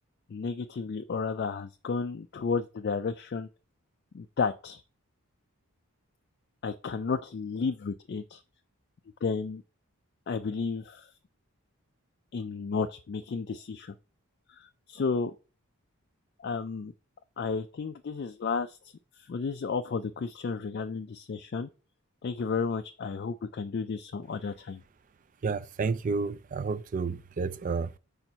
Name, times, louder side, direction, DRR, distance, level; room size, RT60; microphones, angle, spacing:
voice 1, 0.3-3.5 4.1-4.8 6.6-8.4 9.2-9.6 10.3-11.1 12.3-13.9 14.5-15.3 16.4-16.9 17.4-18.8 19.1-21.7 22.2-24.8, left 5 dB, 45° left, 0.3 m, -32 dB
voice 2, 25.4-27.9, right 4 dB, 35° right, 0.3 m, -30 dB
5.0 x 4.5 x 5.3 m
head